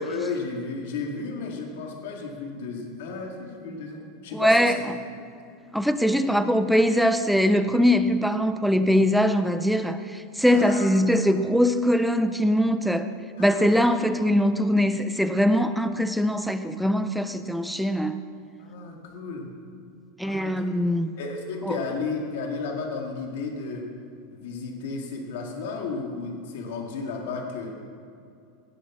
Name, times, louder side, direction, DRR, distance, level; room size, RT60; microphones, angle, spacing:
voice 1, 0.0-4.9 10.5-10.9 13.4-13.8 18.6-19.5 20.2-20.7 21.2-23.8 24.3-27.9, left 4 dB, 65° left, 1 dB, 2.1 m, -33 dB
voice 2, 4.3-4.8 5.7-13.1 13.4-18.2 20.2-21.2 21.6-21.8, equal, ahead, 10 dB, 0.4 m, -22 dB
17.5 x 8.2 x 6.0 m, 2.5 s
supercardioid pair, 180°, 0 cm